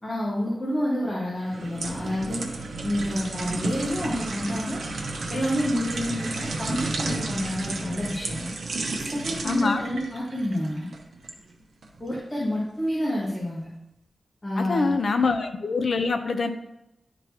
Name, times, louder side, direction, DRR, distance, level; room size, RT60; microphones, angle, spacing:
voice 1, 0.0-2.5 2.8-4.8 5.3-8.5 9.0-10.9 12.0-13.7 14.4-14.9, equal, 20° left, -6 dB, 1.6 m, -28 dB
sound 1, 1.4-11.4 11.8-12.0, right 3 dB, 85° right, 0.9 m, -32 dB
voice 2, 9.4-9.8 14.6-16.5, left 4 dB, 60° left, 7 dB, 0.7 m, -24 dB
11.0 x 3.8 x 2.9 m, 0.85 s
wide cardioid pair, 125°, 0 cm